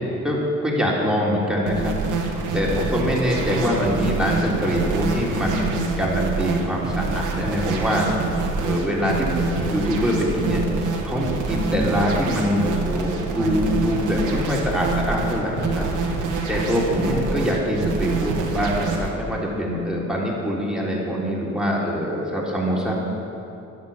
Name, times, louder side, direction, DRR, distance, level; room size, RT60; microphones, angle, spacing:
voice 1, 0.2-2.0 2.2-8.1 8.6-15.9 16.5-22.9, equal, ahead, -4 dB, 3.6 m, -24 dB
sound 1, 1.7-19.1, right 4 dB, 85° right, 1.9 m, -26 dB
11.5 x 11.0 x 7.2 m, 2.9 s
cardioid pair, 90°, 30 cm